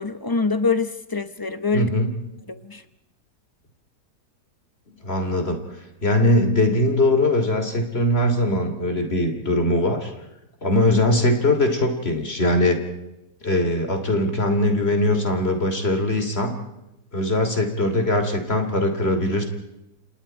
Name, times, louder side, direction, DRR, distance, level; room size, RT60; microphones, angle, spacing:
voice 1, 0.0-1.9 2.5-2.8, left 4 dB, 20° left, 0.6 m, -24 dB
voice 2, 1.7-2.1 5.0-5.6 6.0-10.1 10.6-12.8 13.4-16.5 17.1-19.4, left 1 dB, 35° left, 3.1 m, -21 dB
29.5 x 27.0 x 4.5 m
omnidirectional pair, 1.8 m